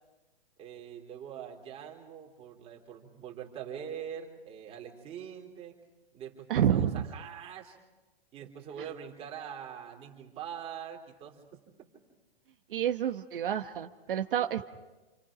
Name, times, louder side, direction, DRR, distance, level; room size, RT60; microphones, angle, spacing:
voice 1, 0.6-5.7 6.1-7.8 8.3-11.4, right 8 dB, 20° right, 0 dB, 3.4 m, -43 dB
voice 2, 6.5-7.0 12.7-14.6, right 10 dB, 60° right, 5 dB, 1.3 m, -29 dB
29.0 x 28.0 x 5.1 m, 1.2 s
hypercardioid pair, 160°, 30 cm